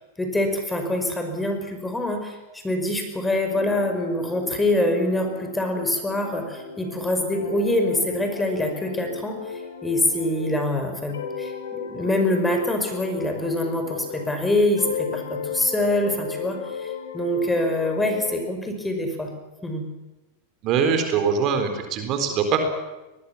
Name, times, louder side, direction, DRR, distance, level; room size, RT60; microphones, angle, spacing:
voice 1, 0.2-9.4 9.8-11.5 11.9-19.3 19.6-19.8, left 1 dB, 10° left, 5 dB, 5.5 m, -25 dB
sound 1, 3.5-10.7 11.1-14.5 14.8-18.4, left 6 dB, 85° left, 4.2 m, -35 dB
voice 2, 20.6-22.6, right 6 dB, 45° right, 6 dB, 4.0 m, -22 dB
23.0 x 20.5 x 7.2 m, 1.1 s
hypercardioid pair, 100°, 0 cm